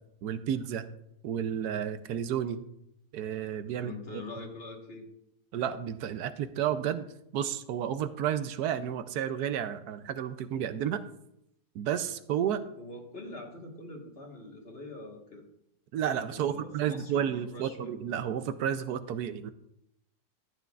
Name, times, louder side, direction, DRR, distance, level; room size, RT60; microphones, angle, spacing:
voice 1, 0.2-0.9 1.2-2.6 3.1-3.9 5.5-7.1 7.3-11.0 11.7-12.6 15.9-19.5, right 9 dB, 80° right, 11 dB, 1.2 m, -31 dB
voice 2, 3.8-5.1 12.8-15.4 16.3-17.9, left 2 dB, 40° left, 1 dB, 1.6 m, -44 dB
13.5 x 9.2 x 2.4 m, 0.77 s
omnidirectional pair, 1.7 m